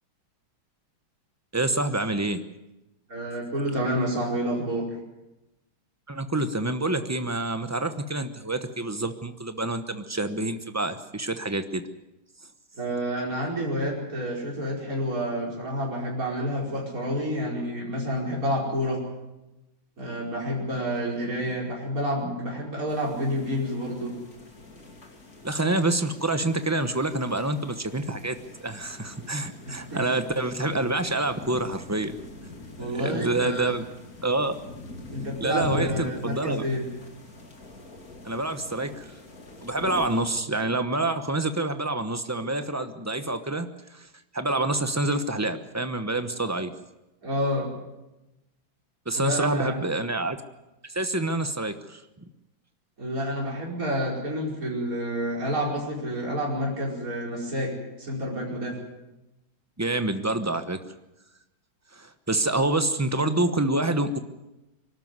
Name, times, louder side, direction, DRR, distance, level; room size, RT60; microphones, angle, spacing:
voice 1, 1.5-2.4 6.1-11.8 25.4-32.2 32.8-33.8 34.2-34.5 35.4-36.6 38.2-39.0 39.6-44.1 44.3-46.7 49.1-50.4 50.9-52.0 59.8-60.8 61.9-64.2, right 2 dB, 15° right, 9 dB, 0.5 m, -27 dB
voice 2, 3.1-4.9 12.8-19.0 20.0-24.1 29.9-30.0 32.8-33.7 35.1-36.8 47.2-47.7 49.2-49.8 53.0-57.7 58.0-58.8, equal, 40° right, -3 dB, 5.6 m, -29 dB
sound 1, 22.9-40.2, left 2 dB, 45° left, 3.2 m, -44 dB
24.0 x 13.0 x 9.6 m, 0.98 s
omnidirectional pair, 2.2 m